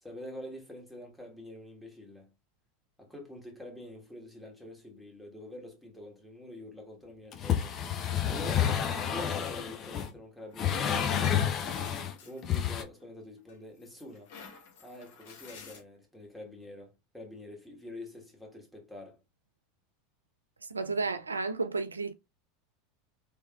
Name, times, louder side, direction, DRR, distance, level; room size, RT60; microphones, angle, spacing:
voice 1, 0.0-2.3 3.0-7.7 8.2-11.4 12.2-14.3 14.8-19.2, left 1 dB, ahead, 1.6 m, -46 dB
sound 1, 7.3-10.1 10.6-12.1 12.4-12.8, left 9 dB, 40° left, 0.7 m, -29 dB
sound 2, 10.5-13.0 13.5-15.8, left 5 dB, 65° left, 1.1 m, -51 dB
voice 2, 20.7-22.1, right 3 dB, 90° right, 0.3 m, -32 dB
3.3 x 3.2 x 2.4 m
figure-of-eight pair, 80°, 0 cm